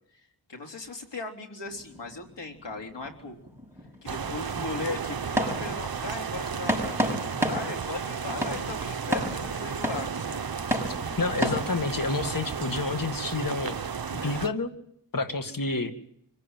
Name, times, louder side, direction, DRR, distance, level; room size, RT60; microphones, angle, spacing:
voice 1, 0.1-3.4 4.0-10.4 14.0-14.4, left 3 dB, 75° left, 3 dB, 3.6 m, -38 dB
sound 1, 1.7-11.7, equal, 5° right, 7.5 m, -33 dB
sound 2, 4.1-14.5, right 6 dB, 55° right, 1.0 m, -33 dB
voice 2, 11.2-13.9 14.2-14.7 15.1-15.9, left 3 dB, 50° left, 8 dB, 2.2 m, -29 dB
25.0 x 16.5 x 9.2 m, 0.70 s
wide cardioid pair, 55°, 43 cm